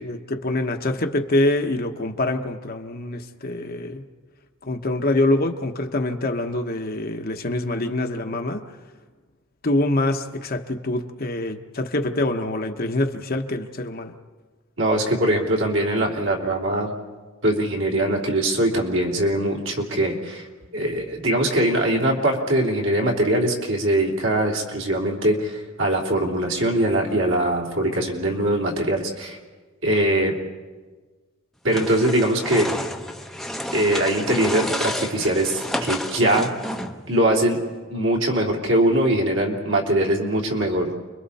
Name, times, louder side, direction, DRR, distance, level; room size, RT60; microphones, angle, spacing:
voice 1, 0.0-4.0 4.6-8.6 9.6-14.1, left 2 dB, 45° left, 5 dB, 1.1 m, -25 dB
voice 2, 14.8-16.9 17.4-20.5 20.7-29.4 29.8-30.3 31.6-32.7 33.7-36.5 37.1-37.6 37.9-40.9, right 1 dB, 65° right, -1 dB, 3.2 m, -22 dB
sound 1, 31.7-37.1, left 1 dB, ahead, 0.9 m, -30 dB
29.5 x 22.5 x 4.2 m, 1.4 s
head